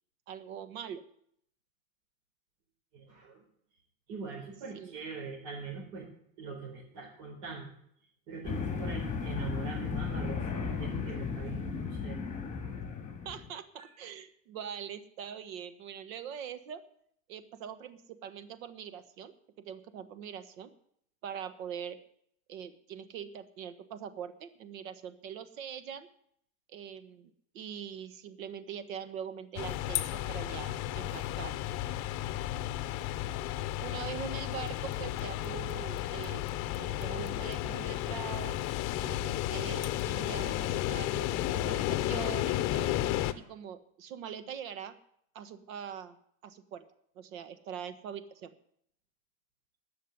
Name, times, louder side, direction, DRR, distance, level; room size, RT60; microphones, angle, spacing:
voice 1, 0.3-1.0 4.7-5.0 13.2-16.8 17.3-20.7 21.2-22.0 22.5-26.1 26.7-31.6 33.8-36.4 36.8-38.6 39.0-42.9 43.3-45.0 45.3-46.2 46.4-46.8 47.1-48.5, right 8 dB, 70° right, 11 dB, 1.5 m, -43 dB
voice 2, 2.9-3.4 4.1-6.1 6.4-7.7 8.3-12.2 33.2-33.5, right 4 dB, 50° right, -4 dB, 4.2 m, -42 dB
sound 1, 8.4-13.5, left 5 dB, 15° left, 2.5 m, -35 dB
sound 2, 29.6-43.3, left 14 dB, 40° left, 0.8 m, -33 dB
13.5 x 6.4 x 9.6 m, 0.69 s
supercardioid pair, 130°, 42 cm